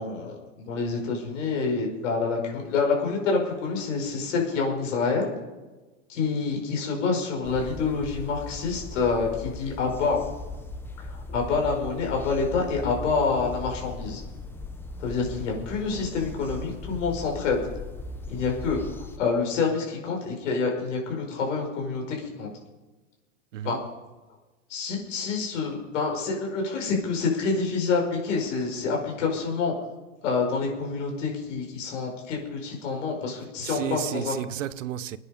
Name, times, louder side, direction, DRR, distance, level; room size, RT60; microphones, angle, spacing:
voice 1, 0.0-5.3 6.1-10.2 11.0-14.2 15.0-17.6 18.3-22.5 23.6-23.8 24.7-29.7 30.2-34.4, left 4 dB, 70° left, 5.3 m, -27 dB
sound 1, 7.4-19.2, left 2 dB, 5° left, 0.7 m, -38 dB
voice 2, 23.5-23.8 33.6-35.2, right 11 dB, 80° right, 0.9 m, -32 dB
25.0 x 9.7 x 5.2 m
supercardioid pair, 145°, 38 cm